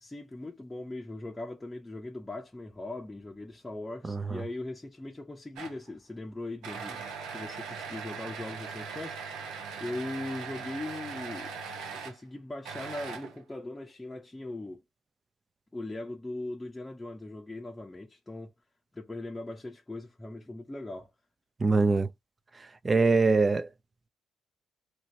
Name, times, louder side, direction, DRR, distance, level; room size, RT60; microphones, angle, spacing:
voice 1, 0.0-7.0 7.3-9.2 9.7-11.5 12.0-14.8 15.7-18.5 18.9-21.1, left 2 dB, 15° left, 0.7 m, -39 dB
voice 2, 4.1-4.4 21.6-22.1 22.8-23.7, right 3 dB, 30° right, 0.5 m, -23 dB
sound 1, 5.6-5.9 6.6-12.2 12.6-13.5, right 5 dB, 90° right, 0.9 m, -40 dB
3.0 x 2.8 x 2.8 m
cardioid pair, 90°, 0 cm